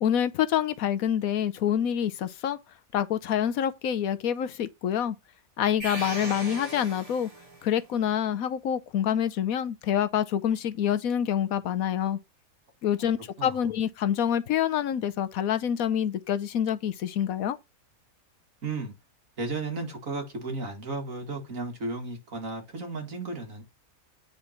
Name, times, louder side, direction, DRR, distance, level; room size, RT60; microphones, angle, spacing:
voice 1, 0.0-2.6 2.9-5.1 5.6-7.3 7.6-12.2 12.8-17.6, left 9 dB, 80° left, 1.2 m, -27 dB
sound 1, 5.8-7.7, right 2 dB, 25° right, 2.1 m, -38 dB
voice 2, 18.6-18.9 19.4-23.6, right 3 dB, 65° right, 2.5 m, -34 dB
9.1 x 4.1 x 5.8 m
omnidirectional pair, 1.5 m